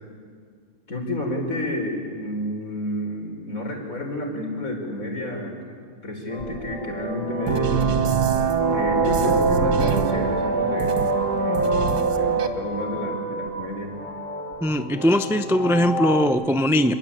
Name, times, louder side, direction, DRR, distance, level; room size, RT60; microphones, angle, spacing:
voice 1, 0.9-5.5 6.0-8.0 8.7-11.0 11.4-13.9, left 1 dB, 55° left, 2 dB, 5.3 m, -30 dB
sound 1, 6.3-16.3, right 1 dB, 15° right, 8.2 m, -33 dB
sound 2, 7.5-12.5, right 5 dB, 80° right, 1.9 m, -22 dB
voice 2, 14.6-16.9, equal, ahead, 9 dB, 0.6 m, -20 dB
29.0 x 22.0 x 8.8 m, 2.1 s
omnidirectional pair, 1.7 m